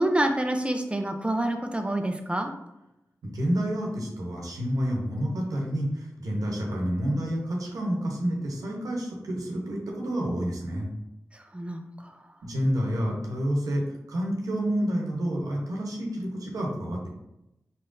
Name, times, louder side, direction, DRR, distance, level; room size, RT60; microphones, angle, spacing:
voice 1, 0.0-2.5 11.3-12.1, right 1 dB, 20° right, 5 dB, 0.5 m, -27 dB
voice 2, 3.3-10.9 12.4-13.8 14.1-17.1, equal, 90° right, -1 dB, 0.9 m, -29 dB
4.2 x 3.8 x 2.6 m, 0.89 s
cardioid pair, 45°, 6 cm